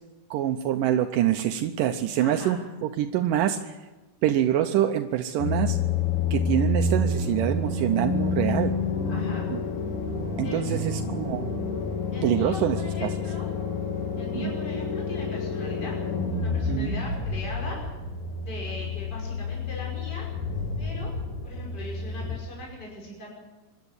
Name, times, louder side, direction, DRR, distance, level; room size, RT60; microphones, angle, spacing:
voice 1, 0.3-3.8 4.2-5.8 6.3-8.7 9.5-9.6 10.4-11.5 12.2-13.1 14.3-14.5 16.7-16.9, right 11 dB, 80° right, 6 dB, 2.4 m, -25 dB
voice 2, 2.2-2.6 9.1-9.5 10.4-10.8 12.1-13.5 14.2-15.9 16.3-17.8 18.5-20.3 20.8-21.1 21.4-23.3, left 2 dB, 30° left, -2 dB, 6.0 m, -39 dB
sound 1, 5.4-22.4, left 4 dB, 65° left, 3.6 m, -29 dB
26.0 x 12.0 x 9.8 m, 1.1 s
omnidirectional pair, 3.8 m